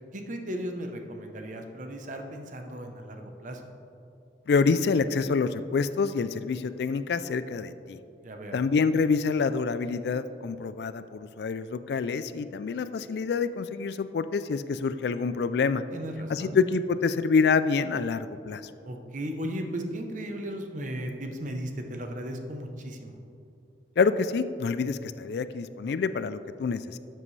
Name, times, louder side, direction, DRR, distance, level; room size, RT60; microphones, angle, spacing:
voice 1, 0.1-3.6 8.2-8.6 15.9-16.6 18.8-23.2, equal, 45° right, 4 dB, 0.8 m, -36 dB
voice 2, 4.5-8.0 8.5-15.8 16.3-18.6 24.0-27.0, left 5 dB, 60° left, 13 dB, 0.3 m, -27 dB
12.5 x 7.6 x 3.3 m, 2.6 s
head